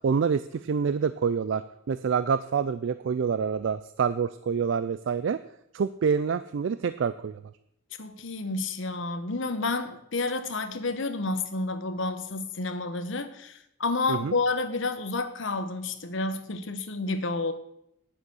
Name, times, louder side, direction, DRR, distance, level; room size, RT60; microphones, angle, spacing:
voice 1, 0.0-5.4 5.7-7.4 14.1-14.4, right 6 dB, 60° right, 14 dB, 0.3 m, -27 dB
voice 2, 8.0-17.5, left 3 dB, 65° left, 10 dB, 0.9 m, -30 dB
9.6 x 6.8 x 6.2 m, 0.77 s
head